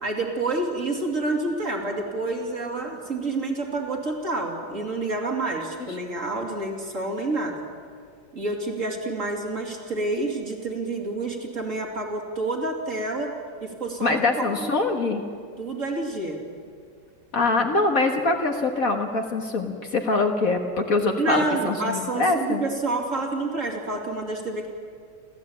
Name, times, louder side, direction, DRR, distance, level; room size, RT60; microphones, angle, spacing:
voice 1, 0.0-7.6 8.3-13.3 13.6-14.7 15.6-16.4 21.2-24.7, right 2 dB, 40° right, 1 dB, 3.0 m, -28 dB
voice 2, 14.0-15.2 17.3-22.6, left 3 dB, 50° left, 4 dB, 1.8 m, -23 dB
29.0 x 13.5 x 8.8 m, 2.2 s
omnidirectional pair, 2.1 m